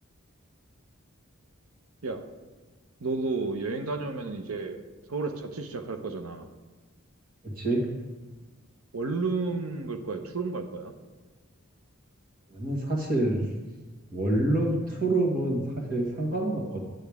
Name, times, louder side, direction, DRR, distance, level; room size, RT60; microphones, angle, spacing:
voice 1, 3.0-4.8 5.1-6.5 8.9-10.9, right 3 dB, 80° right, 6 dB, 0.8 m, -32 dB
voice 2, 7.4-7.8 12.5-13.4 14.1-16.8, right 1 dB, 40° right, -1 dB, 1.7 m, -27 dB
10.0 x 7.9 x 3.6 m, 1.3 s
head